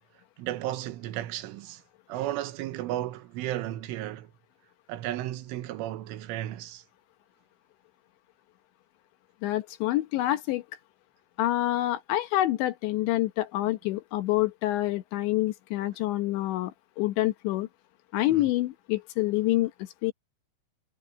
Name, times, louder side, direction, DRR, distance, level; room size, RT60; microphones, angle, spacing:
voice 1, 0.4-1.8 2.1-4.3 4.9-6.8 18.3-18.5, right 14 dB, 80° right, 3.6 m, -34 dB
voice 2, 9.4-10.6 11.4-17.7 18.1-19.7 20.0-20.1, left 16 dB, 75° left, 3.1 m, -27 dB
omnidirectional pair, 5.6 m